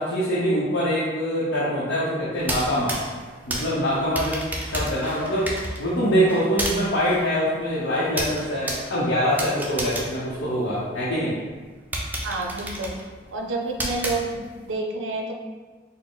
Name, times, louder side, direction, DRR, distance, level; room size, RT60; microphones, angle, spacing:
voice 1, 0.0-3.0 3.5-5.5 5.8-11.4, equal, 90° left, -9 dB, 0.8 m, -24 dB
sound 1, 2.3-11.1 11.5-11.6 11.9-14.7, right 1 dB, 10° right, 0.4 m, -32 dB
voice 2, 12.2-12.9 13.3-14.4 14.7-15.2, right 3 dB, 90° right, 2 dB, 0.5 m, -28 dB
4.0 x 2.0 x 3.8 m, 1.4 s
head